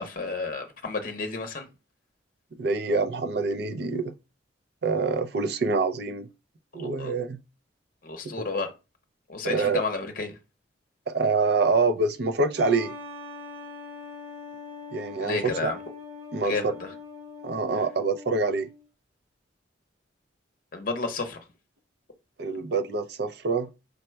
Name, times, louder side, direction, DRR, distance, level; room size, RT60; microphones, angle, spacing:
voice 1, 0.0-1.7 6.7-7.1 8.0-8.7 9.3-10.4 15.2-15.8 16.4-16.9 20.7-21.4, left 3 dB, 45° left, 0.7 m, -31 dB
voice 2, 2.6-4.1 4.8-6.3 6.7-7.4 9.4-9.8 11.1-12.9 14.9-15.7 16.3-16.5 17.4-18.7 22.4-23.7, right 3 dB, 55° right, 0.4 m, -26 dB
sound 1, 12.6-18.9, left 4 dB, 25° right, 0.9 m, -42 dB
5.3 x 2.2 x 4.4 m
head